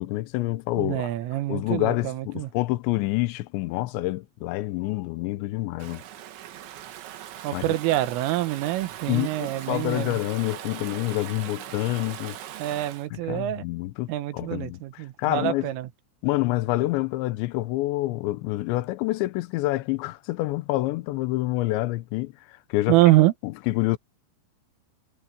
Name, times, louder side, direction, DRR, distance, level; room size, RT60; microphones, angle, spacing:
voice 1, 0.0-1.1 1.5-6.0 7.5-7.8 9.1-12.4 13.1-15.7 16.2-23.0 23.4-24.0, left 18 dB, 75° left, 2.9 m, -27 dB
voice 2, 0.8-2.5 7.4-10.2 12.6-13.6 14.1-15.9 22.9-23.3, right 16 dB, 85° right, 3.7 m, -25 dB
Stream / Ocean, 5.8-13.1, right 11 dB, 70° right, 3.8 m, -40 dB
omnidirectional pair, 5.7 m